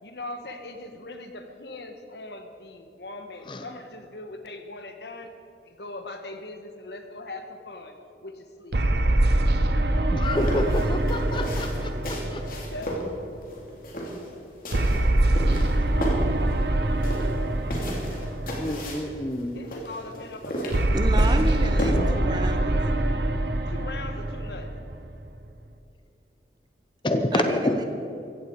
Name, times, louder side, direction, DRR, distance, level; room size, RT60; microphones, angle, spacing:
voice 1, 0.0-5.3 5.6-7.9 8.2-9.6 10.2-10.4 10.8-11.7 12.5-12.9 19.5-20.8 23.7-24.7, left 2 dB, 75° left, 6 dB, 1.5 m, -40 dB
sound 1, 8.7-13.3 14.7-19.1 20.7-25.3, right 1 dB, 70° right, 0.9 m, -24 dB
voice 2, 10.1-12.4 18.6-19.6 27.0-27.8, left 1 dB, 25° left, 6 dB, 0.8 m, -28 dB
sound 2, 10.2-21.9, equal, 50° left, 3.0 m, -34 dB
voice 3, 20.9-22.8 27.3-27.8, right 2 dB, 25° right, 6 dB, 1.0 m, -31 dB
15.5 x 15.0 x 4.8 m, 2.6 s
head